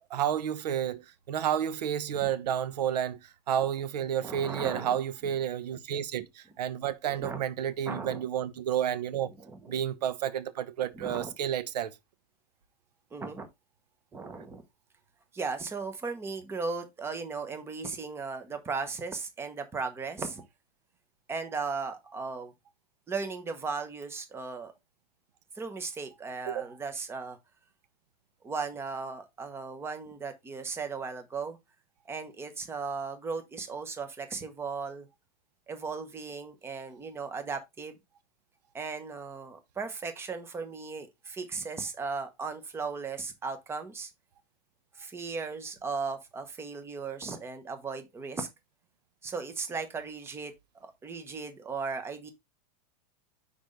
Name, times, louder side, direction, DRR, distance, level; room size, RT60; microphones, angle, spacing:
voice 1, 0.1-9.3 9.7-11.9 26.4-26.7, right 10 dB, 85° right, 0.9 m, -31 dB
voice 2, 4.2-5.0 5.2-5.3 7.1-7.4 7.8-8.3 9.4-9.8 10.9-11.3 13.1-13.5 14.1-14.6 15.3-20.4 21.3-22.5 23.1-24.7 25.5-27.4 28.4-31.6 32.1-35.1 35.7-38.0 38.7-44.1 44.9-48.5 49.2-52.3, right 4 dB, 10° right, 1.1 m, -37 dB
6.1 x 5.5 x 3.3 m
supercardioid pair, 160°, 20 cm